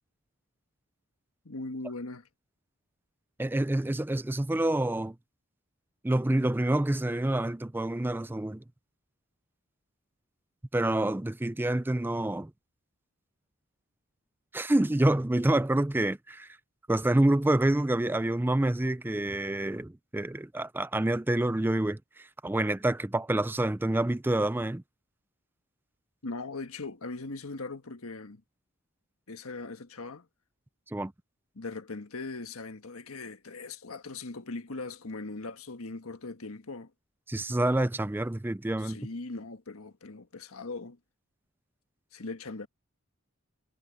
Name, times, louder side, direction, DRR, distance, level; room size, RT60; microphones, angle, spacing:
voice 1, 1.4-2.3 26.2-28.4 29.3-30.3 31.5-36.9 38.8-41.0 42.1-42.7, left 3 dB, 85° left, 1.4 m, -40 dB
voice 2, 3.4-5.2 6.0-8.6 10.7-12.5 14.5-16.5 16.9-22.0 22.4-24.8 30.9-31.1 37.3-39.0, right 1 dB, 10° right, 0.4 m, -27 dB
head